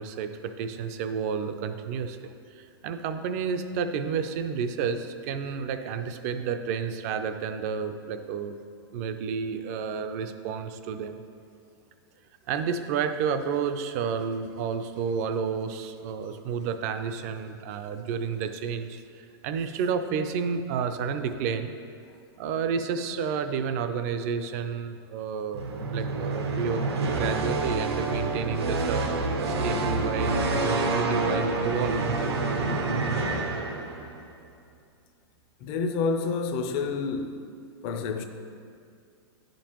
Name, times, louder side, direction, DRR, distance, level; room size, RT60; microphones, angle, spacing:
voice 1, 0.0-8.6 8.9-11.2 12.5-21.7 22.4-25.6 25.9-32.0, right 6 dB, 40° right, 0.4 m, -31 dB
sound 1, 25.5-34.2, right 3 dB, 85° right, 1.0 m, -27 dB
voice 2, 35.6-37.5 37.8-38.2, left 4 dB, 35° left, 0.5 m, -28 dB
10.0 x 5.2 x 2.9 m
supercardioid pair, 155°, 13 cm